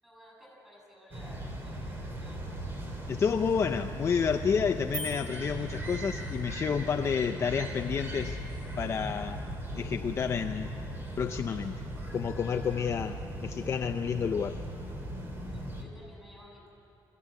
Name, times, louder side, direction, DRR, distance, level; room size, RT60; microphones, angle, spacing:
voice 1, 0.0-2.4 12.1-12.2 15.5-16.7, equal, 5° right, -3 dB, 7.3 m, -54 dB
sound 1, 1.1-15.8, right 1 dB, 30° right, 2.6 m, -38 dB
voice 2, 3.1-8.4 8.8-9.5 9.8-10.8 11.2-11.8 12.1-14.6, left 6 dB, 35° left, 6 dB, 0.5 m, -30 dB
sound 2, 4.9-6.5, right 2 dB, 55° right, 4.6 m, -42 dB
sound 3, 7.7-11.0, left 8 dB, 70° left, 0.9 m, -49 dB
25.0 x 15.0 x 9.7 m, 2.8 s
cardioid pair, 170°, 8 cm